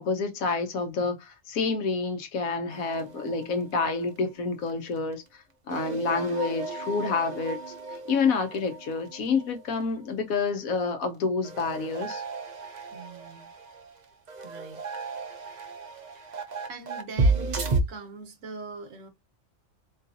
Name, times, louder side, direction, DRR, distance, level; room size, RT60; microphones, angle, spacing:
voice 1, 0.0-5.2 5.7-7.6 8.1-12.2, left 4 dB, 85° left, 1.3 m, -28 dB
sound 1, 2.7-4.2 4.5-4.7 5.0-5.1 5.7-9.7 10.0-10.1 11.4-17.8, right 3 dB, 45° right, 0.6 m, -33 dB
voice 2, 12.9-13.5 14.4-14.8 16.1-19.1, right 4 dB, 70° right, 1.2 m, -43 dB
4.0 x 3.0 x 2.7 m
omnidirectional pair, 1.4 m